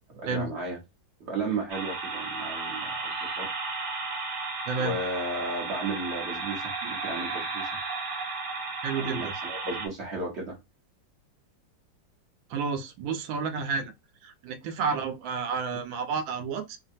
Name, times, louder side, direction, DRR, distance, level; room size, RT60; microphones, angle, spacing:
voice 1, 0.1-0.8 1.2-3.5 4.8-7.7 9.0-10.6 14.9-15.0, right 2 dB, 50° right, 0.9 m, -34 dB
sound 1, 1.7-9.9, right 3 dB, 65° right, 1.4 m, -34 dB
voice 2, 4.7-5.0 6.8-6.9 8.8-9.3 12.5-13.9 14.2-16.8, right 5 dB, 85° right, 1.3 m, -31 dB
3.3 x 2.1 x 2.6 m
omnidirectional pair, 2.0 m